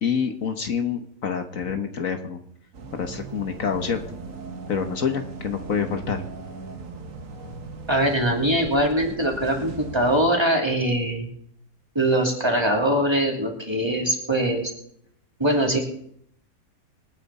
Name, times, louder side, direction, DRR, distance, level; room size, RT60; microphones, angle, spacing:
voice 1, 0.0-2.4 2.9-4.0 4.7-6.2, left 6 dB, 60° left, 6 dB, 1.5 m, -27 dB
sound 1, 2.7-10.3, right 4 dB, 60° right, 1.6 m, -38 dB
voice 2, 7.9-11.3 11.9-14.7 15.4-15.8, right 1 dB, 15° right, 0 dB, 2.9 m, -22 dB
27.0 x 9.1 x 4.2 m, 0.70 s
omnidirectional pair, 1.6 m